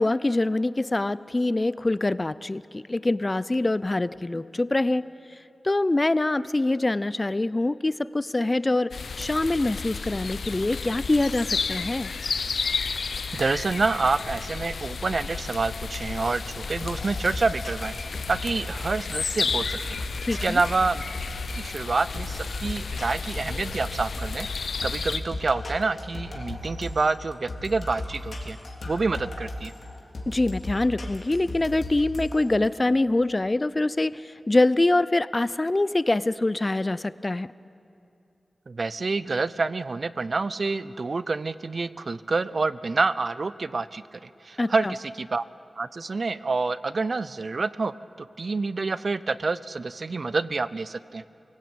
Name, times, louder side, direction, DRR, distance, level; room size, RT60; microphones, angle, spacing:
voice 1, 0.0-5.1 5.6-12.1 20.2-20.6 30.3-37.5 44.6-44.9, left 2 dB, 35° left, 17 dB, 0.5 m, -24 dB
sound 1, 8.9-25.2, left 5 dB, 85° left, 0.8 m, -32 dB
voice 2, 13.3-20.0 20.4-21.0 21.5-24.5 24.8-28.6 28.8-29.7 38.7-45.4 45.8-51.2, right 3 dB, 60° right, 16 dB, 0.6 m, -27 dB
sound 2, 16.2-32.7, left 1 dB, 60° left, 2.9 m, -37 dB
24.0 x 16.5 x 8.7 m, 2.7 s
cardioid pair, 50°, 0 cm